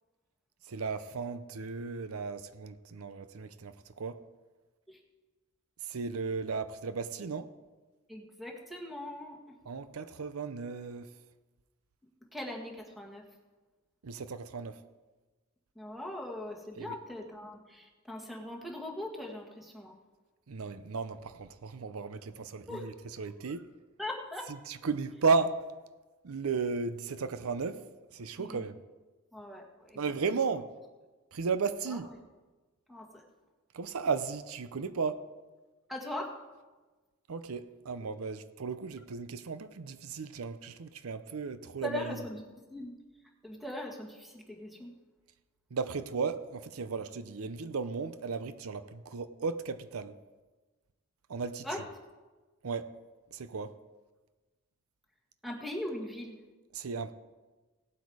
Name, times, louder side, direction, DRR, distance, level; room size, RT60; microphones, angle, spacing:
voice 1, 0.7-4.2 5.8-7.5 9.7-11.1 14.0-14.8 16.8-17.0 20.5-23.7 24.7-25.6 26.2-27.8 28.1-28.8 30.0-30.7 31.3-32.1 33.7-35.2 37.3-42.2 45.7-50.1 51.3-51.7 52.6-52.9 53.3-53.8 56.7-57.1, right 4 dB, 85° right, 0.6 m, -35 dB
voice 2, 8.1-9.6 12.3-13.2 15.8-19.9 22.7-22.9 24.0-24.5 28.4-28.6 29.3-30.0 30.3-30.4 31.9-32.0 32.9-33.2 35.9-36.3 41.8-42.4 42.7-42.9 43.4-44.9 51.6-51.8 55.4-56.4, left 1 dB, ahead, 1.8 m, -40 dB
17.5 x 8.0 x 4.8 m
head